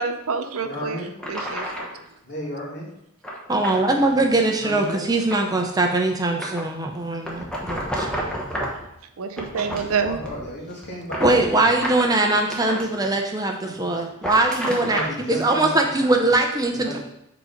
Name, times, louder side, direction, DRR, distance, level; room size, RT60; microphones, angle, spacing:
voice 1, 0.0-1.0 1.3-1.9 9.2-10.2, right 5 dB, 75° right, 8 dB, 0.6 m, -27 dB
sound 1, 0.5-0.6 1.2-2.0 3.2-3.8 4.2-4.4 4.8-5.7 6.4-6.7 7.2-8.9 9.3-10.5 10.8-12.9 14.0-15.2, equal, 5° left, 1.1 m, -31 dB
voice 2, 0.6-1.1 2.2-2.9 4.5-5.1 9.6-11.9 13.6-13.9 14.8-16.4 16.7-17.0, equal, 55° left, -4 dB, 2.4 m, -34 dB
voice 3, 3.5-8.1 11.2-15.0 15.3-17.0, right 2 dB, 15° right, 3 dB, 0.6 m, -21 dB
7.8 x 4.0 x 5.0 m, 0.81 s
head